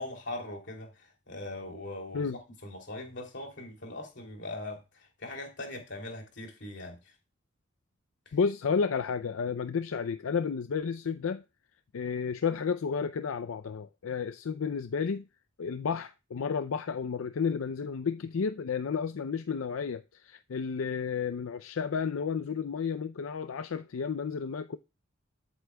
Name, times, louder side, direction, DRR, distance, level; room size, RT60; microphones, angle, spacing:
voice 1, 0.0-7.0, left 2 dB, 60° left, 2.9 m, -41 dB
voice 2, 8.3-11.4 11.9-15.3 15.6-24.8, left 6 dB, 85° left, 0.5 m, -32 dB
13.0 x 8.0 x 2.2 m
head